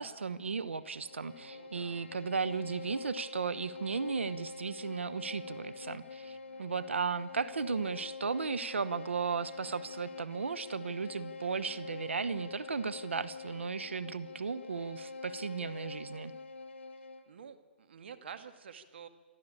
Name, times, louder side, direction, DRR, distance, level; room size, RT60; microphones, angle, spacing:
voice 1, 0.0-16.3, right 5 dB, 90° right, 14 dB, 1.0 m, -35 dB
Bowed string instrument, 0.7-17.4, left 4 dB, 80° left, 1.3 m, -45 dB
voice 2, 1.3-2.1 6.2-6.7 17.3-19.1, right 7 dB, 65° right, 8 dB, 2.2 m, -50 dB
27.5 x 12.5 x 8.7 m, 1.4 s
hypercardioid pair, 140°, 6 cm